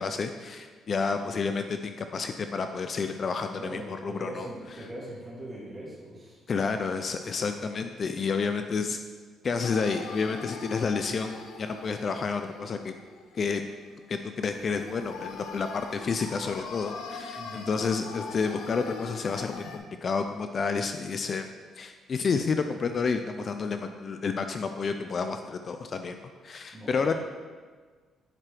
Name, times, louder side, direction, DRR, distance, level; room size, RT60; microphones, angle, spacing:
voice 1, 0.0-4.5 6.5-9.0 9.4-12.9 13.3-13.6 14.1-21.5 21.8-27.1, left 5 dB, 35° left, 7 dB, 0.3 m, -30 dB
voice 2, 3.5-6.4 17.4-17.8 26.7-27.0, right 1 dB, 25° right, -4 dB, 1.8 m, -41 dB
sound 1, 9.6-13.7 14.0-14.1 14.5-19.8, left 4 dB, 90° left, 0.7 m, -41 dB
9.7 x 4.4 x 3.3 m, 1.5 s
cardioid pair, 140°, 0 cm